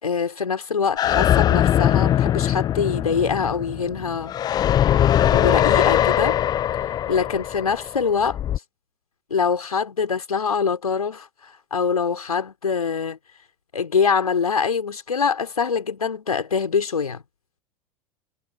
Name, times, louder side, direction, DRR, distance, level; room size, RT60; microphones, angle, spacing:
voice 1, 0.0-4.3 5.3-6.4 7.1-8.4 9.3-11.3 11.7-13.2 13.7-17.2, left 6 dB, 80° left, 3.7 m, -24 dB
sound 1, 1.0-8.6, left 11 dB, 20° left, 0.4 m, -21 dB
figure-of-eight pair, 85°, 19 cm